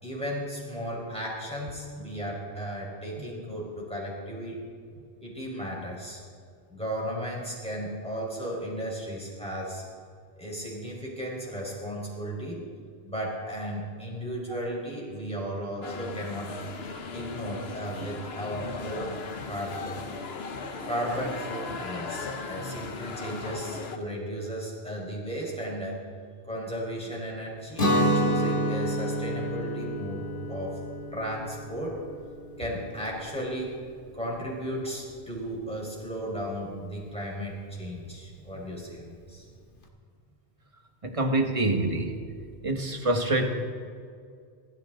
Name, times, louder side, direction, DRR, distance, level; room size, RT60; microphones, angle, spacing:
voice 1, 0.0-4.6 5.2-6.2 6.7-9.8 10.4-12.6 13.0-16.5 17.1-19.2 19.4-20.0 20.8-26.0 26.5-30.8 31.1-32.0 32.6-33.8 34.1-39.4, equal, 5° left, -4 dB, 4.8 m, -35 dB
sound 1, 15.8-24.0, left 4 dB, 70° left, 1.3 m, -37 dB
Guitar, 27.8-33.6, equal, 55° left, 1.8 m, -29 dB
voice 2, 41.0-42.2 42.6-43.5, right 2 dB, 30° right, 3 dB, 1.7 m, -26 dB
27.5 x 13.5 x 3.9 m, 2.2 s
omnidirectional pair, 1.1 m